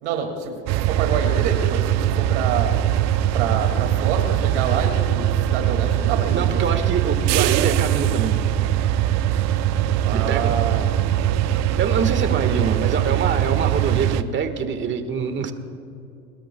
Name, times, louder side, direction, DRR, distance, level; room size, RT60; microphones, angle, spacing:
voice 1, 0.0-2.8 3.3-6.8 10.0-11.0, right 6 dB, 90° right, 3 dB, 2.4 m, -27 dB
sound 1, 0.7-14.2, right 11 dB, 50° right, 0.7 m, -21 dB
voice 2, 6.3-8.4 10.1-10.6 11.8-15.5, right 6 dB, 35° right, 7 dB, 1.6 m, -25 dB
27.5 x 21.5 x 2.3 m, 2.7 s
supercardioid pair, 120°, 33 cm